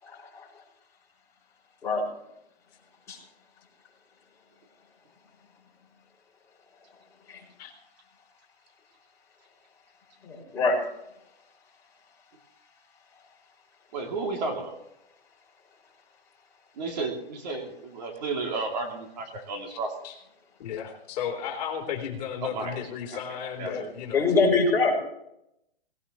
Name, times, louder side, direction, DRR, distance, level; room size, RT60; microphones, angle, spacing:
voice 1, 0.0-0.5 1.8-2.0 3.1-3.2 10.2-10.8 23.6-23.8 24.1-24.9, left 3 dB, 10° left, -6 dB, 5.9 m, -24 dB
voice 2, 13.9-14.8 16.8-19.9 22.4-22.8 23.1-23.9, right 3 dB, 40° right, 2 dB, 2.6 m, -33 dB
voice 3, 20.6-24.2, left 8 dB, 40° left, 0 dB, 3.5 m, -34 dB
18.5 x 18.0 x 3.0 m, 0.82 s
hypercardioid pair, 160°, 31 cm